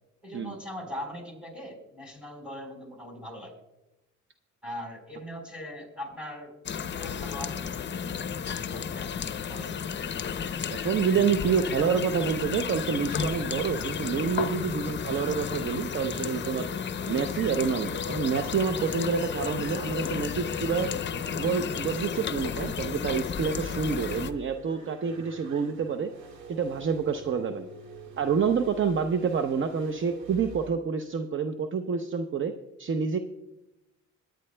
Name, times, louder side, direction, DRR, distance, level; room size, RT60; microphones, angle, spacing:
voice 1, 0.2-3.5 4.6-6.5 6.9-8.1 8.4-9.7, left 1 dB, 5° right, 1 dB, 4.2 m, -41 dB
sound 1, 6.7-24.3, left 7 dB, 40° left, 0.6 m, -33 dB
voice 2, 10.7-16.7 17.1-21.0 21.4-26.1 26.5-27.7 28.2-32.5 32.8-33.2, right 6 dB, 40° right, 7 dB, 0.7 m, -28 dB
sound 2, 12.9-30.7, right 3 dB, 70° right, 1.7 m, -45 dB
21.0 x 10.5 x 2.2 m, 0.96 s
cardioid pair, 90°, 30 cm